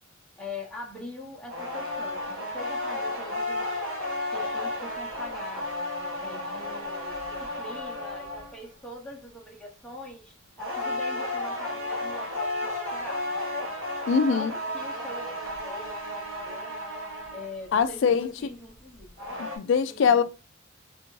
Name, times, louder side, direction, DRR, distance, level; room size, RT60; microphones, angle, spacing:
voice 1, 0.4-3.9 4.3-5.7 6.2-13.7 14.1-16.8 17.3-19.1 19.9-20.2, left 1 dB, 5° left, 0.7 m, -43 dB
sound 1, 1.5-8.6 10.6-17.7 18.9-19.6, left 1 dB, 75° right, 1.3 m, -33 dB
voice 2, 14.1-14.5 17.7-18.3 19.4-20.2, left 6 dB, 60° left, 0.3 m, -22 dB
3.4 x 2.5 x 3.1 m
head